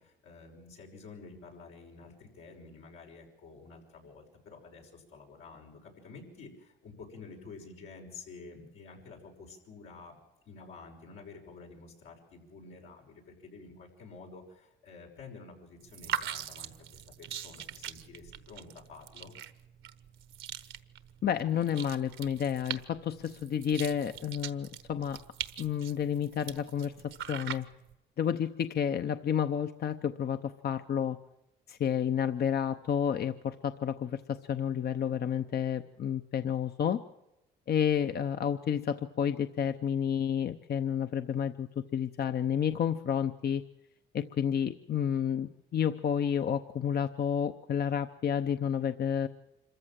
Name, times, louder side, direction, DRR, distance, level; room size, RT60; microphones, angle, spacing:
voice 1, 0.0-10.2 10.5-19.4, left 4 dB, 90° left, 0 dB, 5.8 m, -50 dB
sound 1, 15.8-27.9, right 9 dB, 80° right, 1.2 m, -42 dB
voice 2, 21.2-25.2 25.6-26.9 27.3-27.7 28.2-31.2 31.7-37.0 37.7-43.6 44.1-49.3, left 8 dB, 55° left, 9 dB, 0.8 m, -30 dB
26.0 x 14.5 x 7.6 m, 0.93 s
cardioid pair, 90°, 20 cm